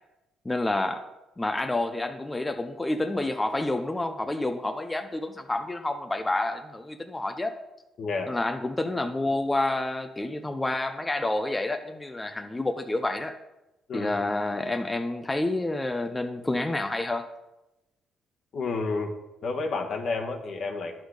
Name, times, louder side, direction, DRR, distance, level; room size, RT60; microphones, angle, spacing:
voice 1, 0.4-1.0 1.4-7.5 8.3-13.3 13.9-17.2, left 2 dB, 15° left, 6 dB, 0.7 m, -29 dB
voice 2, 8.0-8.3 13.9-14.2 18.5-19.1 19.4-21.0, left 3 dB, 60° left, 3 dB, 1.3 m, -30 dB
10.0 x 6.3 x 4.9 m, 0.96 s
cardioid pair, 90°, 0 cm